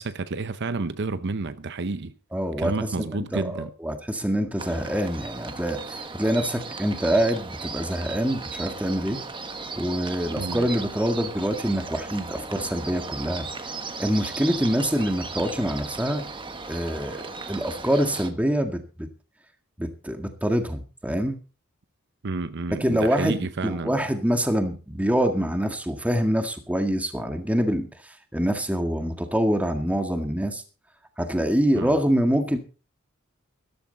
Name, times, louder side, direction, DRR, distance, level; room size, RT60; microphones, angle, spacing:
voice 1, 0.0-2.1 2.6-3.7 10.4-10.7 22.2-24.0 31.7-31.9, right 3 dB, 55° right, 0.7 m, -30 dB
voice 2, 2.3-2.7 3.0-9.2 9.8-13.5 14.0-16.3 16.7-19.1 19.8-21.4 22.7-30.6 31.2-32.6, equal, 5° right, 1.9 m, -25 dB
sound 1, 4.6-18.3, right 4 dB, 25° right, 1.4 m, -36 dB
14.5 x 13.5 x 4.0 m
head